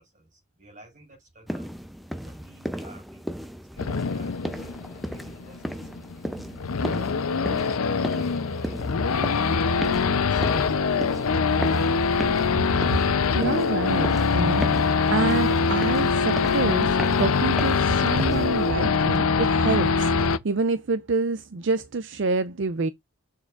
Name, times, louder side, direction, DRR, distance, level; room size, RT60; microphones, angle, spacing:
voice 1, 0.0-1.7 2.1-3.3 3.7-6.4 7.0-9.1 9.7-11.3 12.7-12.8, right 1 dB, 35° right, 5.7 m, -52 dB
sound 1, 1.5-18.7, equal, ahead, 0.5 m, -36 dB
Race car auto racing / Idling / Accelerating revving vroom, 3.8-20.4, left 5 dB, 85° left, 0.6 m, -23 dB
voice 2, 13.3-20.1 20.4-22.9, right 4 dB, 55° right, 0.5 m, -27 dB
7.0 x 6.5 x 2.5 m
head